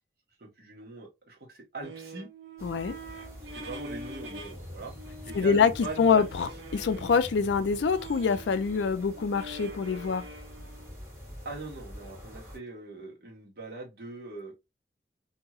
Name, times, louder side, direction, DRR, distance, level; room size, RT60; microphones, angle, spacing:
voice 1, 0.4-2.3 3.4-4.9 5.3-6.3 11.4-14.5, right 3 dB, 55° right, 1.1 m, -41 dB
sound 1, 1.8-4.6 4.8-11.0, right 2 dB, 80° right, 0.6 m, -45 dB
voice 2, 2.6-2.9 5.3-5.7 6.0-10.2, left 6 dB, 75° left, 0.4 m, -25 dB
sound 2, 2.6-12.6, equal, 15° right, 1.5 m, -46 dB
2.9 x 2.7 x 2.3 m
head